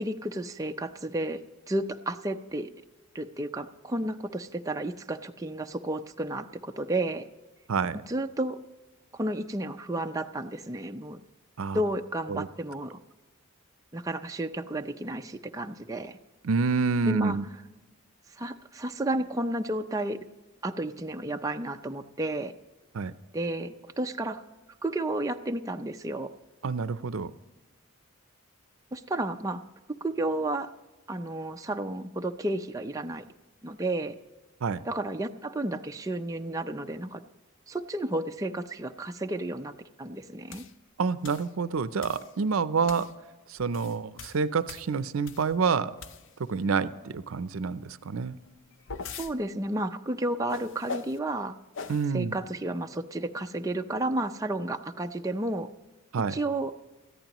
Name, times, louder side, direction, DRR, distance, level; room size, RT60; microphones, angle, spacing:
voice 1, 0.0-1.4 1.7-2.7 3.1-7.2 8.1-8.6 9.1-11.2 11.7-13.0 13.9-16.2 17.0-17.4 18.3-20.2 20.6-22.5 23.3-24.4 24.8-26.3 28.9-29.6 30.0-30.7 31.1-33.2 33.6-34.2 34.9-37.2 37.7-39.7 40.0-40.6 49.2-51.6 52.1-55.7 56.3-56.7, right 1 dB, 15° right, 4 dB, 0.4 m, -32 dB
voice 2, 16.4-17.4 22.9-23.1 26.6-27.3 34.6-34.8 41.0-43.1 43.5-45.9 46.5-48.4 51.9-52.4 56.1-56.3, right 5 dB, 75° right, 14 dB, 0.5 m, -28 dB
sound 1, 40.5-40.7 41.2-41.5 42.0-42.3 42.9-43.1 43.6-45.6 46.0-46.5 48.4-49.3 50.5-51.2 51.7-52.1, left 4 dB, 60° left, 0.6 m, -41 dB
19.5 x 14.0 x 3.0 m, 1.1 s
head